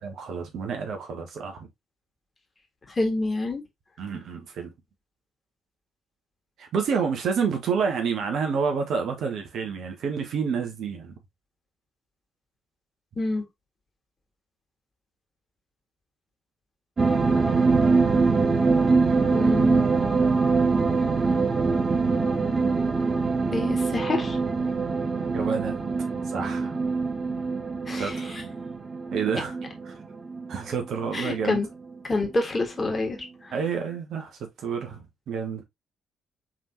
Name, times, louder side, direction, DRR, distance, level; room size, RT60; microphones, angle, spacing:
voice 1, 0.0-1.7 4.0-4.7 6.6-11.2 25.3-25.8 26.3-26.8 27.9-28.4 29.1-29.6 29.8-29.9 30.5-31.6 33.5-35.6, right 6 dB, 55° right, 1.1 m, -29 dB
voice 2, 2.9-3.6 13.2-13.4 19.3-19.8 23.5-24.4 27.9-28.4 31.1-31.7 32.0-33.2 33.4-33.5, left 2 dB, 30° left, 1.8 m, -27 dB
sound 1, 17.0-31.5 31.9-32.0, right 4 dB, 40° right, 1.0 m, -24 dB
4.9 x 3.6 x 2.7 m
figure-of-eight pair, 45°, 0 cm